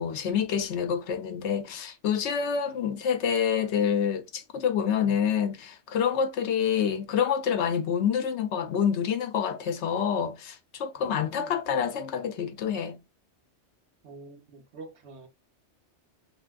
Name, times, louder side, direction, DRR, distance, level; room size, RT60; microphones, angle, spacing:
voice 1, 0.0-13.0, left 7 dB, 80° left, 0.9 m, -27 dB
voice 2, 10.9-11.5 14.0-15.3, right 4 dB, 70° right, 1.1 m, -47 dB
3.3 x 2.5 x 2.3 m
omnidirectional pair, 1.2 m